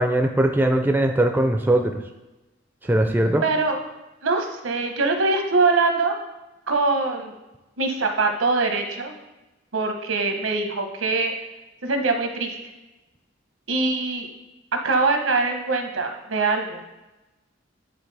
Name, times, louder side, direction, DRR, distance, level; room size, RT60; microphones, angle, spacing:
voice 1, 0.0-1.9 2.9-3.4, right 1 dB, 10° right, 4 dB, 0.3 m, -20 dB
voice 2, 3.4-3.8 4.2-6.1 6.7-7.3 7.8-9.1 9.7-11.3 11.8-12.5 13.7-14.3 14.7-16.8, right 3 dB, 85° right, 4 dB, 0.9 m, -23 dB
9.6 x 3.9 x 3.3 m, 1.0 s
head